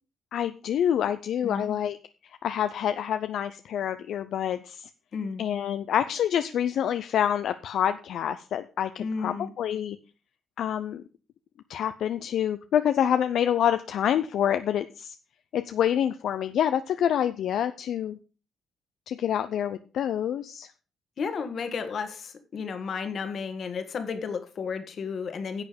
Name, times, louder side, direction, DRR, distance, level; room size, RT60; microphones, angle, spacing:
voice 1, 0.3-2.0 2.4-4.9 5.4-10.0 10.6-11.0 11.7-15.2 15.5-18.2 19.1-20.7, left 9 dB, 70° left, 0.6 m, -27 dB
voice 2, 1.4-1.8 5.1-5.5 9.0-9.5 21.2-25.6, left 5 dB, 55° left, 1.7 m, -33 dB
10.5 x 7.0 x 5.2 m
cardioid pair, 90°, 0 cm